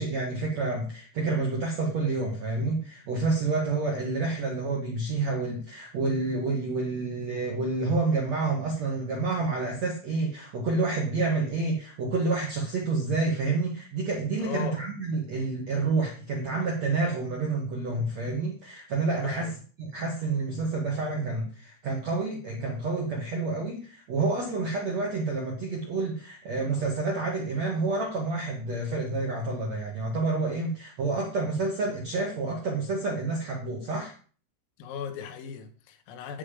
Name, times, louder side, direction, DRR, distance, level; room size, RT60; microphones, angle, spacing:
voice 1, 0.0-19.5 19.8-34.1, right 3 dB, 65° right, 1.7 m, -29 dB
voice 2, 14.4-14.8 15.7-15.8 19.2-19.5 34.8-36.4, left 6 dB, 85° left, 3.9 m, -37 dB
9.7 x 8.7 x 5.1 m
omnidirectional pair, 5.8 m